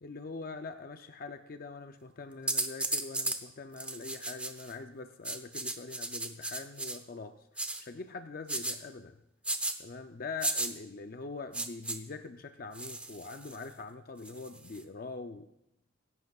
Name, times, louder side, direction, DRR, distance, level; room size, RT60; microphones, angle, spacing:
voice 1, 0.0-9.2 9.8-15.4, left 4 dB, 45° left, 7 dB, 0.5 m, -43 dB
sound 1, 2.5-3.4 3.8-4.7 5.2-7.0 7.6-7.8 8.5-8.8 9.4-9.7 10.4-10.7 11.5-12.0 12.7-13.6 14.3-14.8, right 2 dB, 5° right, 0.6 m, -34 dB
23.5 x 11.0 x 2.4 m, 0.82 s
head